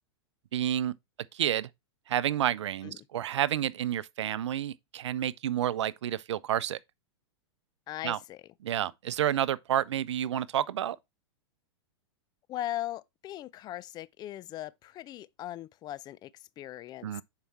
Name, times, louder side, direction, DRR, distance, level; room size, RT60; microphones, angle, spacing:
voice 1, 0.5-1.0 1.3-1.7 2.1-6.8 8.0-8.2 8.6-11.0 17.0-17.2, right 11 dB, 75° right, 0.6 m, -30 dB
voice 2, 7.9-8.4 12.5-17.2, left 13 dB, 30° left, 0.5 m, -39 dB
7.0 x 4.9 x 4.2 m
hypercardioid pair, 115°, 15 cm